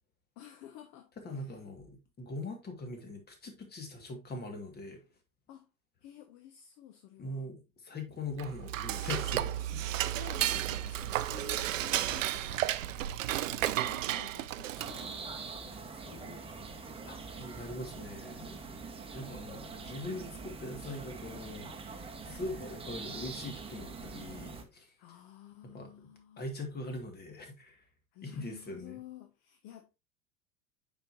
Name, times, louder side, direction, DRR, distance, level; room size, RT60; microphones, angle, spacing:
voice 1, 0.4-1.7 5.5-5.7 6.0-7.5 10.0-12.7 13.2-17.5 19.1-20.1 25.0-26.5 28.1-29.9, left 10 dB, 40° left, 1.0 m, -52 dB
voice 2, 1.2-5.0 7.2-9.8 17.0-18.8 19.1-24.9 25.6-25.9 26.4-27.8 28.2-29.0, left 2 dB, 20° left, 2.0 m, -42 dB
Dishes pots and pans / Cutlery silverware, 8.3-15.2, right 13 dB, 65° right, 0.6 m, -33 dB
sound 1, 14.7-24.6, right 4 dB, 15° right, 1.2 m, -44 dB
8.8 x 5.1 x 2.7 m
figure-of-eight pair, 85°, 43 cm